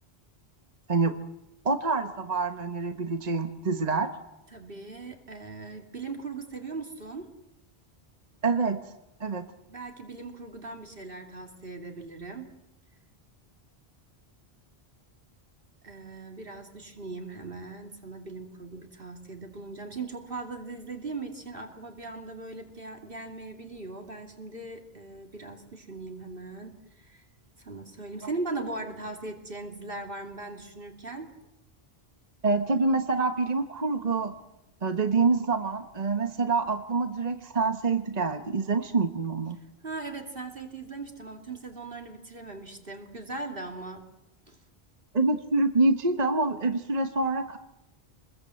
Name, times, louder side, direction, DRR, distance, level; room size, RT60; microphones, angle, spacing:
voice 1, 1.6-4.1 8.4-8.9 9.2-9.5 32.4-34.3 34.8-39.6 45.1-47.6, right 3 dB, 40° right, 7 dB, 1.3 m, -26 dB
voice 2, 4.5-7.3 9.7-12.5 15.8-27.2 27.6-31.3 39.8-44.0 44.5-44.6, right 3 dB, 60° right, 2 dB, 2.9 m, -39 dB
27.5 x 21.0 x 7.8 m, 0.91 s
omnidirectional pair, 1.1 m